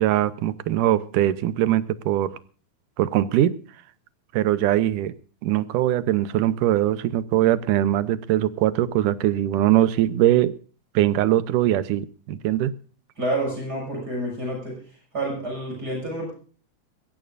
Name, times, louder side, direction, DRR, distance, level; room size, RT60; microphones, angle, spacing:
voice 1, 0.0-2.4 3.0-3.5 4.3-5.1 5.4-10.5 10.9-12.7, right 13 dB, 85° right, 15 dB, 2.4 m, -21 dB
voice 2, 13.2-14.8 15.1-16.3, right 1 dB, 30° right, 0 dB, 7.2 m, -28 dB
22.0 x 16.0 x 2.6 m, 0.39 s
omnidirectional pair, 3.6 m